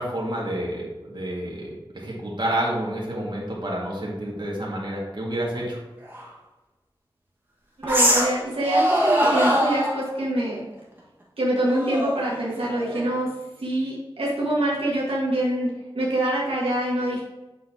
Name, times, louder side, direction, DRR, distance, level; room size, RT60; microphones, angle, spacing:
voice 1, 0.0-5.8, right 1 dB, 55° right, -4 dB, 2.2 m, -29 dB
sound 1, 6.1-6.2 7.8-8.4 8.6-10.0 11.7-13.2, equal, 25° right, 1.9 m, -22 dB
voice 2, 7.8-10.6 11.4-17.2, right 1 dB, 85° right, -6 dB, 1.8 m, -25 dB
8.1 x 6.5 x 3.0 m, 1.1 s
wide cardioid pair, 65°, 10 cm